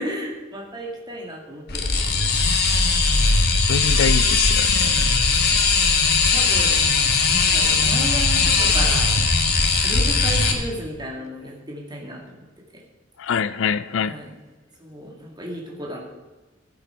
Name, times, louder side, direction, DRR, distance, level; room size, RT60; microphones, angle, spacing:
voice 1, 0.0-2.3 6.3-6.8 7.3-9.1 9.8-12.2 14.0-14.3 14.8-16.0, equal, 20° right, 2.4 m, -33 dB
sound 1, 1.7-10.5, left 4 dB, 55° left, 1.6 m, -19 dB
voice 2, 3.7-5.0 13.2-14.2, left 7 dB, 70° left, 0.4 m, -24 dB
15.0 x 8.8 x 4.6 m
head